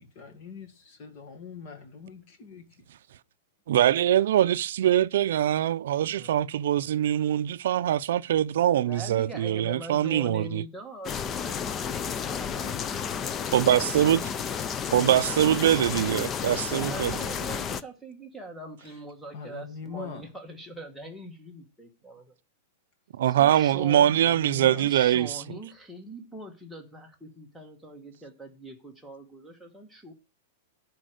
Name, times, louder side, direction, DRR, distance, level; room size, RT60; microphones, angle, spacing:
voice 1, 0.0-2.7 19.3-20.2 24.1-24.8, left 5 dB, 35° left, 1.8 m, -42 dB
voice 2, 3.7-10.6 13.5-14.3 14.9-17.1 23.1-25.4, right 11 dB, 65° right, 0.4 m, -23 dB
voice 3, 8.8-13.1 16.7-22.3 23.2-24.1 24.6-30.1, right 2 dB, ahead, 1.2 m, -42 dB
sound 1, 11.0-17.8, left 7 dB, 15° left, 0.4 m, -32 dB
10.5 x 4.5 x 6.5 m
supercardioid pair, 175°, 0 cm